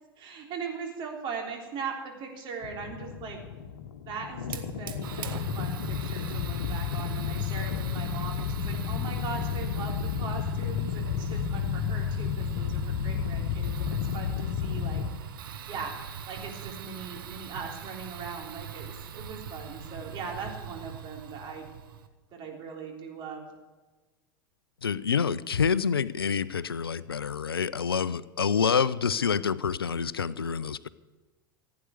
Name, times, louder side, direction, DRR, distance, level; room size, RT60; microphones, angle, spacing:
voice 1, 0.2-3.4 4.0-15.0 15.7-16.0 16.3-21.7 22.3-23.5, right 5 dB, 40° right, 1 dB, 3.6 m, -40 dB
sound 1, 2.6-15.1, left 7 dB, 65° left, 1.2 m, -32 dB
Fire, 4.4-22.1, right 7 dB, 65° right, 1.2 m, -42 dB
voice 2, 24.8-30.9, left 6 dB, 85° left, 18 dB, 0.5 m, -27 dB
16.0 x 9.5 x 8.3 m, 1.2 s
figure-of-eight pair, 85°, 12 cm